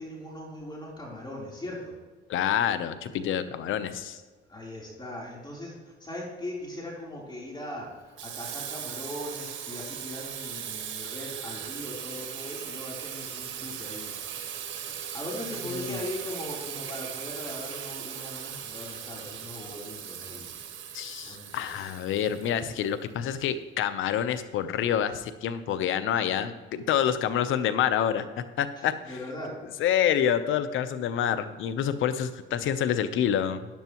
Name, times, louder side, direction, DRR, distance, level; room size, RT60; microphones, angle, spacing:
voice 1, 0.0-1.9 4.5-5.7 6.0-14.1 14.6-20.5 21.2-21.9 28.8-29.5, left 1 dB, 20° left, -4 dB, 3.5 m, -39 dB
voice 2, 2.3-4.2 15.8-16.0 20.9-28.2 28.6-28.9 29.8-33.7, left 9 dB, 85° left, 12 dB, 0.8 m, -27 dB
Water tap faucet / Sink (filling or washing), 8.2-22.9, right 8 dB, 75° right, 1.4 m, -38 dB
12.5 x 10.5 x 3.0 m, 1.3 s
cardioid pair, 90°, 20 cm